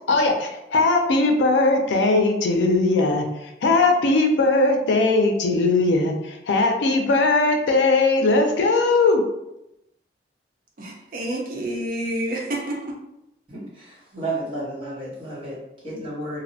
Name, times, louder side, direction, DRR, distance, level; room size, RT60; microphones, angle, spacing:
voice 1, 0.1-9.2, left 3 dB, 85° left, 4 dB, 0.4 m, -19 dB
voice 2, 10.8-12.9, right 1 dB, 50° right, -1 dB, 0.5 m, -28 dB
voice 3, 13.5-16.4, right 2 dB, 30° right, -8 dB, 1.0 m, -32 dB
2.6 x 2.0 x 2.6 m, 0.87 s
head